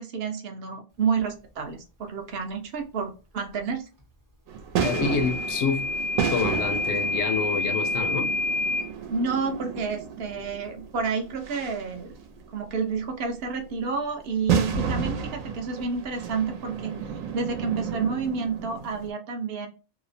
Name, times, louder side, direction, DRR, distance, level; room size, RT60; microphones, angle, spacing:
voice 1, 0.0-3.9 9.1-12.1 12.5-16.9 17.3-19.7, right 5 dB, 60° right, 0.7 m, -30 dB
sound 1, 4.5-19.1, right 7 dB, 85° right, 1.0 m, -32 dB
voice 2, 4.8-5.9 6.3-8.3, left 6 dB, 75° left, 0.9 m, -27 dB
Microwave oven / Alarm, 4.8-8.9, left 2 dB, 25° right, 0.4 m, -28 dB
2.7 x 2.0 x 2.5 m
omnidirectional pair, 1.4 m